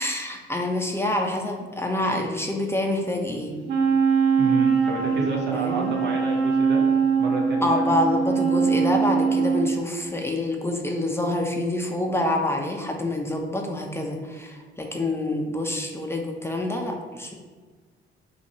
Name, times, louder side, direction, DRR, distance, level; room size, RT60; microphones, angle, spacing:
voice 1, 0.0-3.5 5.5-6.0 7.6-17.3, left 1 dB, 10° left, 1 dB, 0.6 m, -27 dB
Wind instrument woodwind instrument, 3.7-9.8, right 6 dB, 80° right, 1.0 m, -22 dB
voice 2, 4.4-6.8 7.2-7.9, right 2 dB, 60° right, 0 dB, 1.0 m, -30 dB
6.1 x 2.8 x 2.7 m, 1.4 s
cardioid pair, 90°, 20 cm